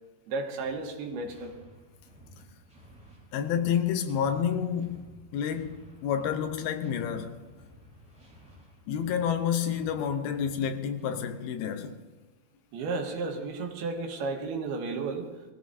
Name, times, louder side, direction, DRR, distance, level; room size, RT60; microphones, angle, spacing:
voice 1, 0.3-1.5 12.7-15.3, right 3 dB, 85° right, 3.3 m, -33 dB
sound 1, 0.6-11.4, equal, ahead, 3.9 m, -54 dB
voice 2, 3.3-5.0 5.3-7.4 8.9-12.0, left 8 dB, 80° left, 2.7 m, -29 dB
21.5 x 15.0 x 2.7 m
omnidirectional pair, 4.4 m